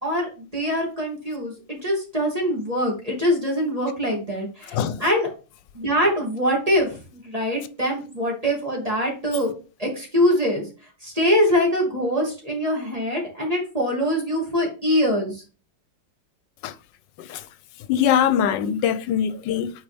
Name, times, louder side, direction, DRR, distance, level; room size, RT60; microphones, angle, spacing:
voice 1, 0.0-5.3 5.7-9.5 9.8-10.7 11.0-15.3, equal, 20° right, 2.5 m, -23 dB
voice 2, 17.9-19.7, left 9 dB, 85° left, 1.3 m, -22 dB
8.9 x 4.7 x 3.4 m
omnidirectional pair, 1.9 m